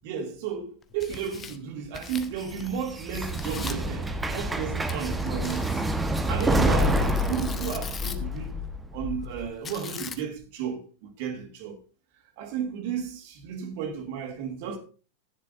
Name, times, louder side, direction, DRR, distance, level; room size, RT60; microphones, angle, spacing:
voice 1, 0.0-5.7 6.3-8.5 8.9-11.8 12.4-14.8, right 7 dB, 50° right, 2.5 m, -33 dB
Tearing, 0.8-2.8 3.1-3.9 4.9-8.4 9.6-10.4, left 6 dB, 20° left, 1.1 m, -41 dB
sound 1, 2.2-9.5, equal, 10° right, 1.1 m, -28 dB
15.0 x 10.0 x 2.6 m
figure-of-eight pair, 90°, 0 cm